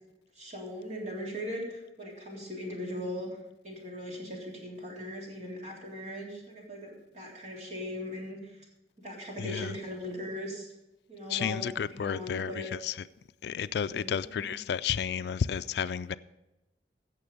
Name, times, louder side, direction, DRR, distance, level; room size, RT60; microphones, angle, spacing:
voice 1, 0.4-3.3 3.6-8.7 9.0-10.7 11.1-12.7 13.9-14.5, left 1 dB, 40° right, 3.5 m, -39 dB
voice 2, 9.4-9.7 11.3-12.5 12.8-12.9 13.4-16.2, left 7 dB, 65° left, 0.3 m, -31 dB
15.5 x 6.9 x 5.3 m
head